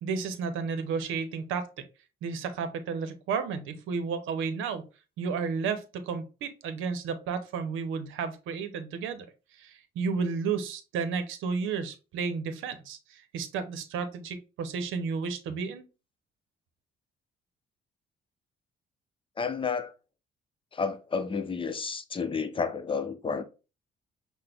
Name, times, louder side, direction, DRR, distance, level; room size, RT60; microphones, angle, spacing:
voice 1, 0.0-1.7 2.2-4.8 5.2-9.3 9.6-15.8, right 5 dB, 90° right, 0.7 m, -32 dB
voice 2, 19.4-19.9 20.7-23.4, left 5 dB, 25° left, 0.6 m, -31 dB
5.7 x 2.1 x 3.4 m
cardioid pair, 90°, 20 cm